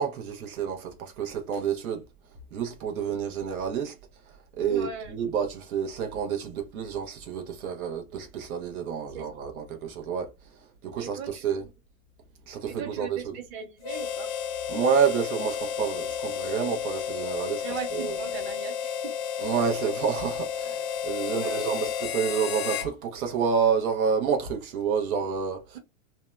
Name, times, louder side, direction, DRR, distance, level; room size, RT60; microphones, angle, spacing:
voice 1, 0.0-2.0 2.5-3.9 4.6-10.3 10.8-11.6 12.5-13.3 14.7-17.6 17.9-18.1 19.4-25.8, right 7 dB, 85° right, 0.8 m, -29 dB
voice 2, 4.7-5.2 9.0-9.8 11.0-11.7 12.7-14.3 17.6-19.4 21.2-21.8, right 7 dB, 45° right, 1.0 m, -40 dB
Harmonica, 13.8-22.9, left 8 dB, 50° left, 0.5 m, -32 dB
2.7 x 2.1 x 2.2 m
hypercardioid pair, 140°, 42 cm